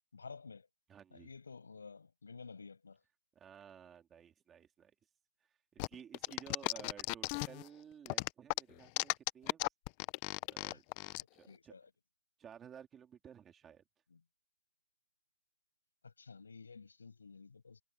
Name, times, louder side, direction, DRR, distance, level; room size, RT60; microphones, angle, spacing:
voice 1, 0.1-0.7 1.1-3.0 10.6-10.8 11.5-11.9 14.1-14.2 16.0-17.8, left 5 dB, 75° left, 7.0 m, -52 dB
voice 2, 0.9-1.3 3.3-4.9 5.7-9.6 10.5-10.8 11.3-11.7 12.4-13.8, right 8 dB, 10° right, 2.8 m, -55 dB
sound 1, 5.8-7.7 8.1-11.2, left 25 dB, 20° left, 0.5 m, -36 dB
hypercardioid pair, 170°, 0 cm